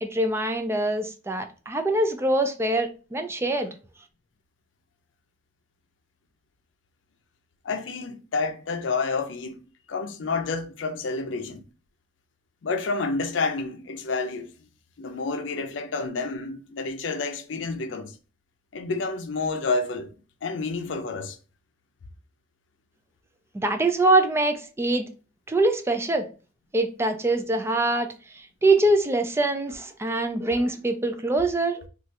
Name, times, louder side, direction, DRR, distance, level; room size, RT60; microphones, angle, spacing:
voice 1, 0.0-3.7 23.5-25.1 25.5-26.3 26.7-28.1 28.6-31.9, right 2 dB, 15° right, 0.3 m, -24 dB
voice 2, 7.6-9.6 9.9-11.6 12.6-14.5 15.0-18.2 18.7-20.1 20.4-21.4, left 3 dB, 90° left, 0.5 m, -29 dB
3.1 x 2.4 x 2.8 m
head